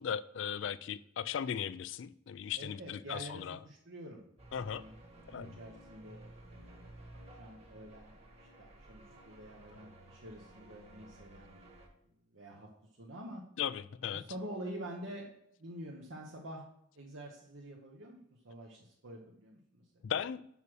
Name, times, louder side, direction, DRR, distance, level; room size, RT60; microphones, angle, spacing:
voice 1, 0.0-3.6 4.5-4.8 5.3-5.5 13.6-14.2 20.0-20.4, left 8 dB, 65° left, 0.4 m, -37 dB
voice 2, 2.5-4.2 4.5-11.7 12.3-13.4 14.1-15.3 15.6-16.6 16.9-19.8, right 1 dB, 75° right, 1.1 m, -47 dB
sound 1, 4.4-11.9, right 1 dB, 30° right, 1.5 m, -55 dB
6.1 x 5.5 x 6.2 m
head